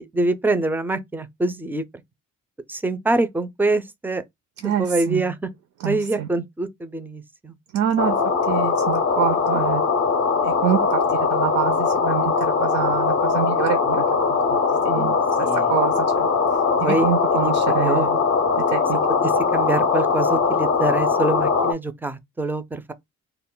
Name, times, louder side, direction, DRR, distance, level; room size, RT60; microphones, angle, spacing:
voice 1, 0.0-1.8 2.7-4.2 4.6-5.5 5.8-7.5 15.4-15.6 16.8-17.1 17.4-17.5 17.8-18.1 19.2-22.9, right 2 dB, 5° right, 0.3 m, -25 dB
voice 2, 4.6-5.2 5.8-6.3 7.7-8.2 8.4-9.8 10.4-14.1 14.5-16.3 16.8-18.2 18.7-19.0, right 10 dB, 65° right, 0.5 m, -26 dB
sound 1, 8.0-21.7, left 5 dB, 45° left, 0.5 m, -21 dB
2.3 x 2.1 x 3.6 m
cardioid pair, 90°, 30 cm